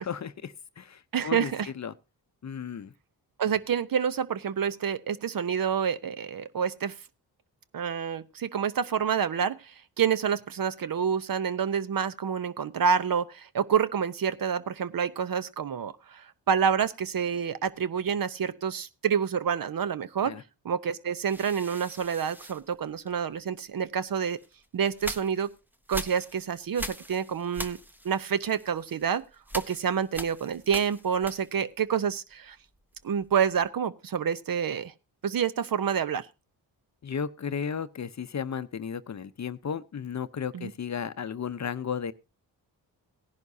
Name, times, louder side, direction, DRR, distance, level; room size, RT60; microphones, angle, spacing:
voice 1, 0.0-1.9 2.4-2.9 20.2-20.4 37.0-42.1, left 7 dB, 40° left, 0.7 m, -34 dB
voice 2, 1.1-1.7 3.4-6.9 7.7-20.3 20.6-24.4 24.7-25.5 25.9-27.8 28.0-29.2 29.5-32.6 33.0-34.9 35.2-36.3 40.5-40.7, right 7 dB, 50° right, 0.8 m, -28 dB
sound 1, 21.3-23.5 24.1-31.8 32.1-33.7, equal, 5° right, 0.7 m, -42 dB
17.0 x 10.5 x 2.7 m
supercardioid pair, 45°, 45 cm